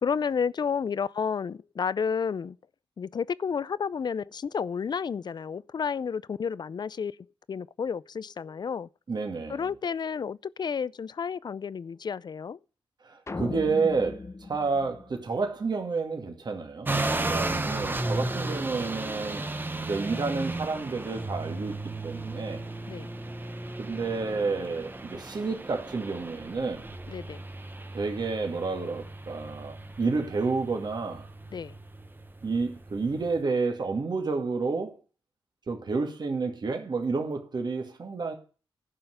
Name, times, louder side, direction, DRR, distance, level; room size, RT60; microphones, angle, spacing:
voice 1, 0.0-2.6 3.0-7.2 7.5-8.9 9.5-12.6 22.9-23.1 27.1-27.4 31.5-31.8, left 6 dB, 50° left, 0.5 m, -31 dB
voice 2, 9.1-9.7 13.0-19.4 19.9-21.7 22.0-22.6 23.8-26.9 27.9-31.3 32.4-35.0 35.7-38.3, right 4 dB, 50° right, 2.1 m, -30 dB
sound 1, 13.3-15.7, left 3 dB, 30° left, 0.8 m, -38 dB
sound 2, 16.8-33.4, right 2 dB, 20° right, 1.1 m, -35 dB
11.0 x 5.7 x 7.8 m
cardioid pair, 65°, 9 cm